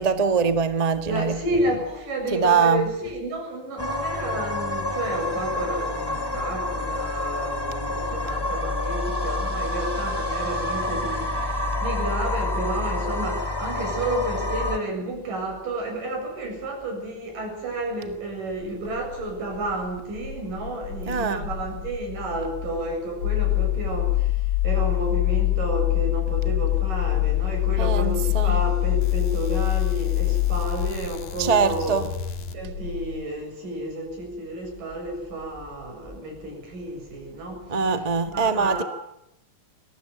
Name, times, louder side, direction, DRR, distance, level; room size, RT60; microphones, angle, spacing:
voice 1, 0.0-1.4 2.3-2.8 21.1-21.4 27.8-28.5 31.4-32.0 37.7-38.8, right 5 dB, 30° right, 0.7 m, -22 dB
voice 2, 1.0-24.4 24.6-32.1 32.5-38.1 38.3-38.9, right 1 dB, 85° right, 9.0 m, -31 dB
sound 1, 3.8-14.8, left 2 dB, 10° left, 1.8 m, -28 dB
sound 2, 18.6-33.2, left 15 dB, 70° left, 3.5 m, -25 dB
22.5 x 17.5 x 9.2 m
omnidirectional pair, 3.7 m